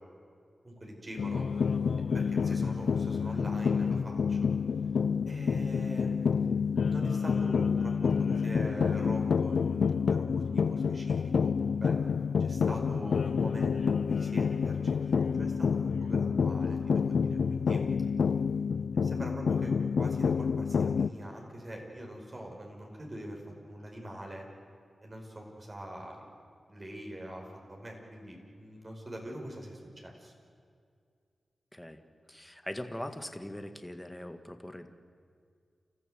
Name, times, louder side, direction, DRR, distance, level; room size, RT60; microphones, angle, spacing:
voice 1, 0.6-1.7 2.1-4.4 5.3-12.0 12.4-17.8 19.0-24.5 25.0-26.2 26.7-30.3, equal, 35° right, 0 dB, 5.4 m, -43 dB
sound 1, 1.2-21.1, left 6 dB, 80° left, 0.5 m, -28 dB
voice 2, 31.7-32.0 32.3-34.9, left 1 dB, 10° left, 7 dB, 1.8 m, -41 dB
30.0 x 14.0 x 8.0 m, 2.2 s
cardioid pair, 60°, 0 cm